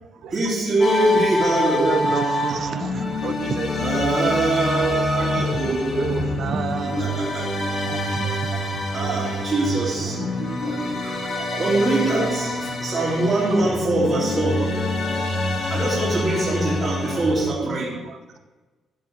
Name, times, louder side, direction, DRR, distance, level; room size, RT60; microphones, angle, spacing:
voice 1, 0.3-2.0 3.7-6.1 7.0-7.6 8.9-10.2 11.6-14.7 15.7-18.0, right 2 dB, 40° right, -7 dB, 2.9 m, -23 dB
sound 1, 0.8-17.5, left 2 dB, 45° left, 2.6 m, -26 dB
voice 2, 1.6-3.7 5.4-5.8 6.0-7.1 7.9-8.3, right 6 dB, 60° right, 10 dB, 0.7 m, -29 dB
voice 3, 2.5-3.2 3.7-5.3 6.7-9.1 9.9-11.6 12.8-13.0 13.4-14.3 15.0-15.3 15.6-15.7 16.9-17.4 17.7-18.4, right 7 dB, 75° right, 7 dB, 1.2 m, -41 dB
13.0 x 4.4 x 8.0 m, 1.3 s
cardioid pair, 90°, 0 cm